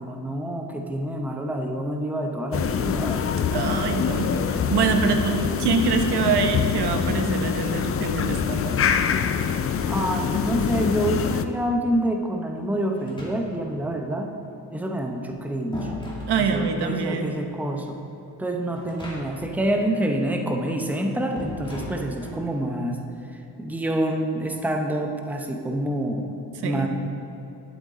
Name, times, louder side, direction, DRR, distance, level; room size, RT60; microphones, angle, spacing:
voice 1, 0.0-3.3 9.9-14.3 14.7-15.9 16.4-18.0 18.4-23.0 23.6-26.9, right 1 dB, 5° right, 3 dB, 0.8 m, -27 dB
sound 1, 2.5-11.5, left 7 dB, 35° left, 0.4 m, -25 dB
voice 2, 3.5-8.8 16.3-17.3 26.6-26.9, right 5 dB, 70° right, 5 dB, 1.0 m, -25 dB
sound 2, 12.9-13.8 15.1-16.9 18.7-19.6 19.8-19.9 21.4-22.5, left 2 dB, 10° left, 2.3 m, -37 dB
11.5 x 8.3 x 3.7 m, 2.9 s
cardioid pair, 95°, 41 cm